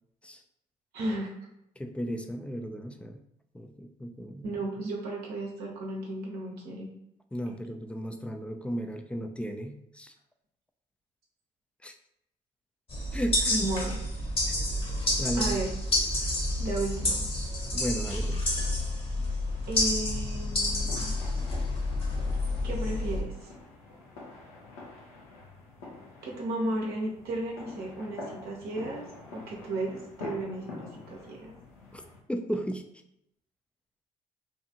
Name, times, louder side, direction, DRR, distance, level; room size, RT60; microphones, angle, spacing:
voice 1, 0.9-1.3 4.4-6.9 13.5-14.0 15.3-15.7 16.6-17.3 19.7-21.1 22.6-23.5 26.2-29.1 29.3-31.5, right 2 dB, 65° right, -2 dB, 0.7 m, -34 dB
voice 2, 1.8-3.2 3.5-4.5 7.3-10.1 11.8-12.0 13.1-13.7 14.5-14.6 15.2-15.6 17.7-18.5 31.9-32.0 32.3-32.8, equal, 5° left, 5 dB, 0.3 m, -35 dB
sound 1, 12.9-23.2, left 1 dB, 30° left, 1.0 m, -29 dB
sound 2, 18.7-32.2, left 3 dB, 85° left, 0.7 m, -47 dB
2.6 x 2.3 x 2.8 m, 0.78 s
hypercardioid pair, 50°, 17 cm